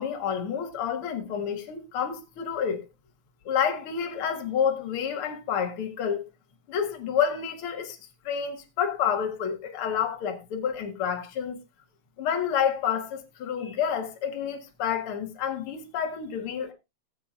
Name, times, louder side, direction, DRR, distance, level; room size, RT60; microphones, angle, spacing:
voice 1, 0.0-2.8 3.5-6.2 6.7-8.0 8.2-11.6 12.2-16.7, left 8 dB, 50° left, 2.2 m, -29 dB
19.0 x 7.7 x 2.5 m
omnidirectional pair, 3.6 m